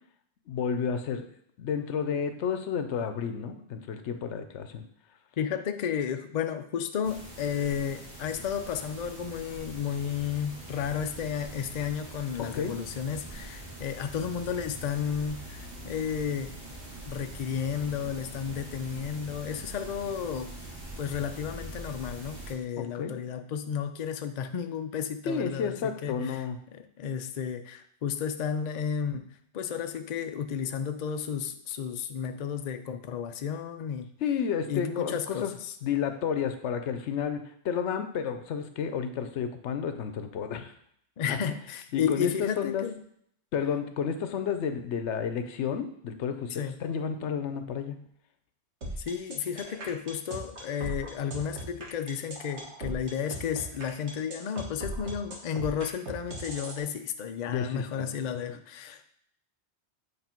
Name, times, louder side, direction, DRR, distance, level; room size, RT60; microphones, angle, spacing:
voice 1, 0.5-1.3 1.6-4.9 12.4-12.8 22.8-23.2 25.3-26.6 34.2-35.5 35.8-40.7 41.3-41.4 41.9-42.8 43.5-48.0 57.5-58.1 58.5-58.6, left 7 dB, 90° left, 8 dB, 1.0 m, -31 dB
voice 2, 5.4-16.6 17.1-20.5 21.0-26.4 26.7-34.1 34.7-35.7 41.2-43.0 46.6-46.8 49.0-59.1, left 7 dB, 50° left, 8 dB, 0.5 m, -33 dB
sound 1, 7.0-22.5, right 1 dB, 40° right, 1.7 m, -43 dB
sound 2, 48.8-56.8, right 1 dB, 80° right, 1.6 m, -38 dB
8.1 x 3.4 x 4.4 m, 0.69 s
omnidirectional pair, 1.1 m